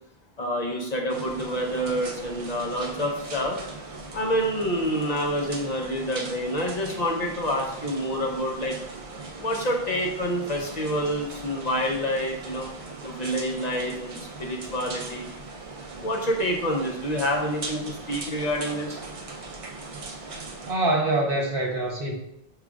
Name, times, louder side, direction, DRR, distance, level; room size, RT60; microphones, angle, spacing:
voice 1, 0.4-3.6 4.1-8.8 9.3-12.7 13.0-15.3 16.0-19.0, equal, 45° left, 0 dB, 0.7 m, -27 dB
sound 1, 1.1-20.7, right 3 dB, 45° right, 0.5 m, -39 dB
voice 2, 20.6-22.1, right 2 dB, 65° right, -1 dB, 1.2 m, -24 dB
6.0 x 3.2 x 2.3 m, 0.76 s
omnidirectional pair, 1.0 m